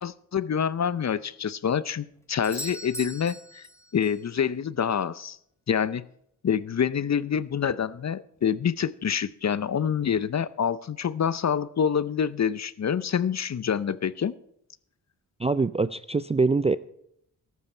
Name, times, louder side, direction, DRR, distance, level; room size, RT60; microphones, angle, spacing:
voice 1, 0.0-3.7 3.9-5.4 5.7-6.0 6.4-14.3, left 7 dB, 40° left, 17 dB, 0.6 m, -27 dB
Doorbell, 2.4-4.3 8.4-8.5, equal, 5° left, 1.0 m, -40 dB
voice 2, 15.4-16.8, right 3 dB, 15° right, 14 dB, 0.4 m, -24 dB
13.5 x 11.0 x 4.4 m, 0.72 s
supercardioid pair, 50°, 43 cm